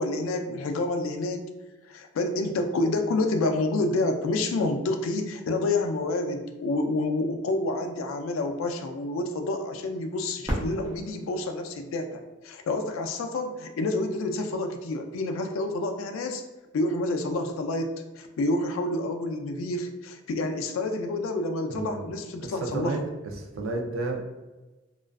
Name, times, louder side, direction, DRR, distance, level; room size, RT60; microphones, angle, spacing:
voice 1, 0.0-1.5 1.8-16.4 16.7-23.0, left 2 dB, 80° left, 6 dB, 0.3 m, -28 dB
Fireworks, 10.4-13.2 13.9-14.0 14.7-15.1 17.0-17.1, equal, 15° right, 0.5 m, -36 dB
voice 2, 21.7-22.1 22.4-23.0 23.4-24.4, right 2 dB, 80° right, 2 dB, 0.4 m, -32 dB
2.4 x 2.2 x 2.2 m, 1.2 s
head